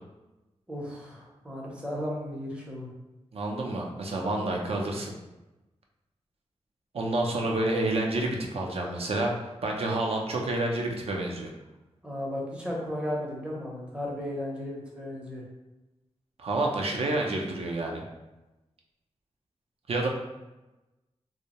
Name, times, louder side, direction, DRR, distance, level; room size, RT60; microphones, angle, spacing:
voice 1, 0.7-2.9 12.0-15.4, left 1 dB, 10° right, -3 dB, 0.6 m, -35 dB
voice 2, 3.3-5.1 6.9-11.5 16.4-18.0 19.9-20.1, right 2 dB, 60° right, 1 dB, 0.4 m, -29 dB
2.6 x 2.0 x 2.8 m, 1.0 s
wide cardioid pair, 145°, 11 cm